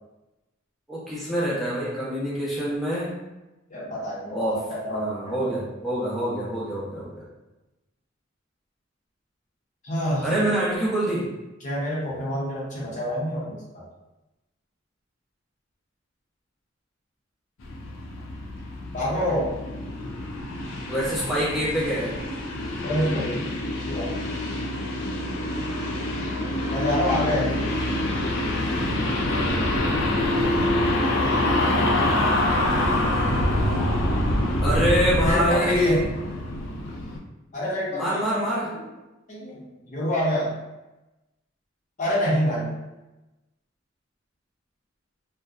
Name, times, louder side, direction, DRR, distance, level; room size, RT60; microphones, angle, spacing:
voice 1, 0.9-3.1 4.3-4.6 4.9-7.2 10.2-11.3 20.9-22.2 29.2-29.8 34.6-36.0 37.9-38.7, right 1 dB, ahead, -9 dB, 0.7 m, -26 dB
voice 2, 3.7-5.5 9.8-10.3 11.6-13.8 18.9-19.5 22.8-23.4 23.9-24.1 26.7-27.5 35.2-36.0 37.5-38.8 39.3-40.6 42.0-42.7, left 1 dB, 40° left, -6 dB, 0.7 m, -27 dB
sound 1, 17.6-37.2, left 1 dB, 75° left, 0.4 m, -26 dB
2.7 x 2.1 x 2.3 m, 1.0 s
head